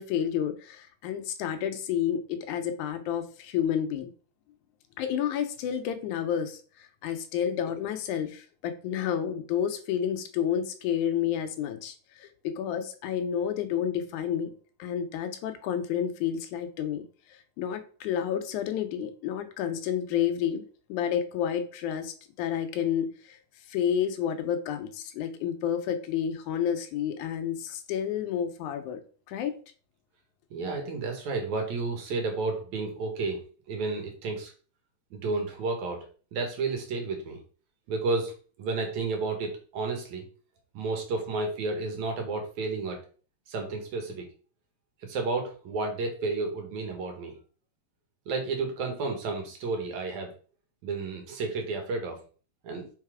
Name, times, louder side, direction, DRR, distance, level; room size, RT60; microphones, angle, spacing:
voice 1, 0.0-4.1 5.0-14.5 14.8-17.0 17.3-23.4 23.7-29.0 29.3-29.6, left 9 dB, 80° left, 8 dB, 2.2 m, -30 dB
voice 2, 30.5-33.4 33.7-34.5 35.1-36.0 36.3-37.4 37.9-38.3 38.6-40.2 40.7-43.0 43.5-44.3 45.0-47.4 48.3-50.3 50.8-52.2 52.6-52.9, right 3 dB, 70° right, 3 dB, 2.7 m, -31 dB
5.6 x 4.0 x 4.8 m, 0.40 s
omnidirectional pair, 3.5 m